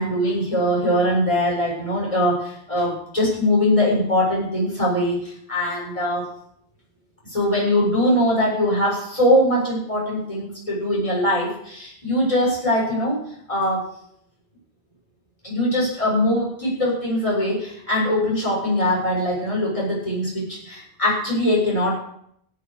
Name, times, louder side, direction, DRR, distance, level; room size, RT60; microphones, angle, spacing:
voice 1, 0.0-6.3 7.3-13.2 13.5-13.9 15.4-22.0, left 1 dB, 30° left, -5 dB, 7.3 m, -22 dB
17.5 x 7.9 x 6.7 m, 0.70 s
omnidirectional pair, 1.1 m